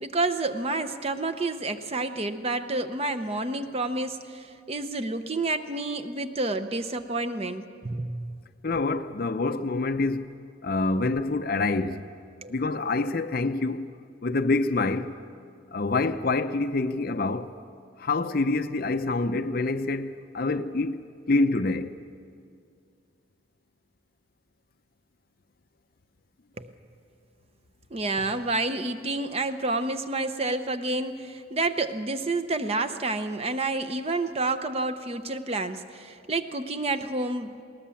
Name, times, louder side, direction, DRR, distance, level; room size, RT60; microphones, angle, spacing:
voice 1, 0.0-8.4 12.4-12.6 26.6-26.7 27.9-37.6, right 2 dB, 30° right, 0.7 m, -29 dB
voice 2, 8.6-10.4 10.6-12.1 12.5-13.9 14.2-15.2 15.7-17.5 18.0-21.0 21.3-22.0, left 3 dB, 45° left, 0.6 m, -26 dB
20.5 x 18.5 x 7.1 m
head